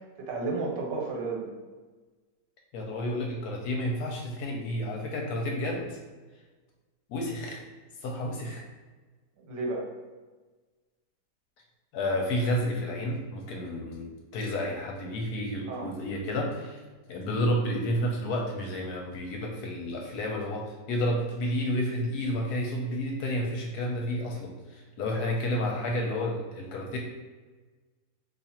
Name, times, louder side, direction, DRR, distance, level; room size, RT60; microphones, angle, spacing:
voice 1, 0.2-1.5 9.4-9.9 15.7-15.9 25.1-25.3, right 3 dB, 80° right, -1 dB, 1.4 m, -32 dB
voice 2, 2.7-6.0 7.1-7.6 8.0-8.7 11.9-16.8 17.1-27.0, left 1 dB, 70° left, 0 dB, 1.1 m, -31 dB
2.8 x 2.4 x 4.2 m, 1.3 s
omnidirectional pair, 1.9 m